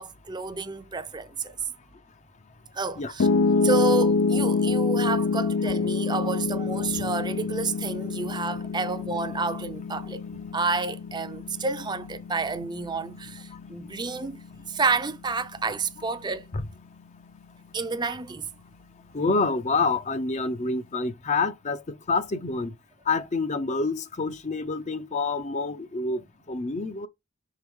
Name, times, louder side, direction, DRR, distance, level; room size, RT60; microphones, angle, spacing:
voice 1, 0.0-1.5 2.7-3.3 3.6-14.4 14.7-16.4 17.7-18.5, right 4 dB, 20° right, 0.5 m, -30 dB
Piano, 3.2-15.4, left 4 dB, 85° left, 0.5 m, -27 dB
voice 2, 19.1-21.8 22.1-22.7 23.1-27.1, left 3 dB, 35° left, 0.5 m, -27 dB
6.0 x 4.6 x 3.6 m
head